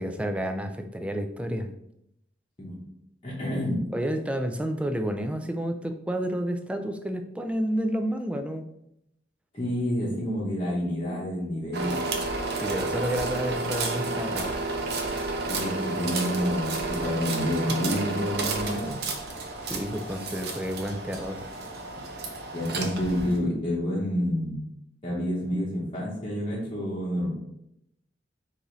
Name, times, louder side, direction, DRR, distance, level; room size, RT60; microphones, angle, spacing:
voice 1, 0.0-1.7 3.9-8.7 12.6-14.6 19.7-21.5, equal, 5° right, 6 dB, 0.3 m, -30 dB
voice 2, 3.2-3.9 9.5-12.1 15.5-18.9 22.5-24.6 25.0-27.3, equal, 30° left, -6 dB, 1.0 m, -28 dB
sound 1, 11.7-23.4, right 3 dB, 60° right, 0.7 m, -31 dB
4.8 x 2.7 x 3.9 m, 0.79 s
head